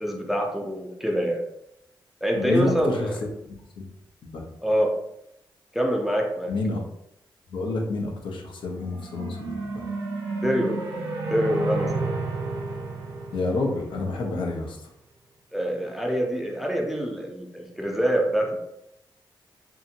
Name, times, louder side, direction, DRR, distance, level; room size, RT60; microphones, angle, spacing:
voice 1, 0.0-1.4 2.2-3.2 4.6-5.0 5.7-6.5 10.4-10.8 11.3-12.0 15.5-18.6, equal, 5° right, 0 dB, 0.5 m, -25 dB
voice 2, 2.4-3.9 4.3-4.4 6.5-6.8 7.5-9.8 13.3-14.9, left 2 dB, 75° left, 0 dB, 0.6 m, -29 dB
sound 1, 8.8-14.3, right 3 dB, 85° right, 0.7 m, -31 dB
2.7 x 2.6 x 2.5 m, 0.80 s
cardioid pair, 90°, 8 cm